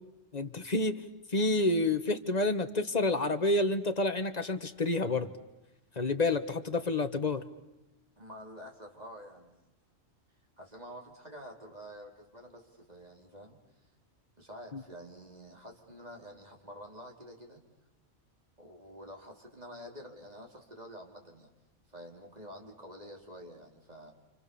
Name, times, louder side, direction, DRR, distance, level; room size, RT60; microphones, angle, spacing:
voice 1, 0.3-1.0 1.3-5.3 6.0-7.4 14.7-14.8, left 2 dB, 35° left, 8 dB, 1.5 m, -29 dB
voice 2, 8.2-9.6 10.6-13.6 14.4-17.6 18.6-21.5 21.9-24.1, equal, 30° right, 1 dB, 3.9 m, -48 dB
28.5 x 28.0 x 7.0 m, 0.99 s
omnidirectional pair, 1.3 m